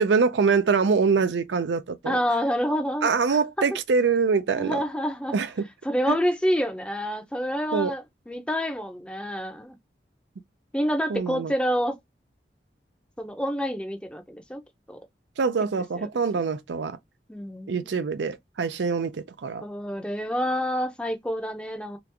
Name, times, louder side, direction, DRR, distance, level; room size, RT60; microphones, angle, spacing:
voice 1, 0.0-2.2 3.0-4.8 5.3-5.5 6.1-6.2 7.7-7.9 11.1-11.5 15.4-17.0 17.7-19.6, right 5 dB, 90° right, 0.5 m, -24 dB
voice 2, 2.1-3.8 4.6-5.4 5.8-9.8 10.7-12.0 13.2-14.6 14.9-15.0 16.0-16.1 17.3-17.9 19.6-22.0, equal, 5° left, 0.5 m, -28 dB
2.9 x 2.4 x 3.3 m
head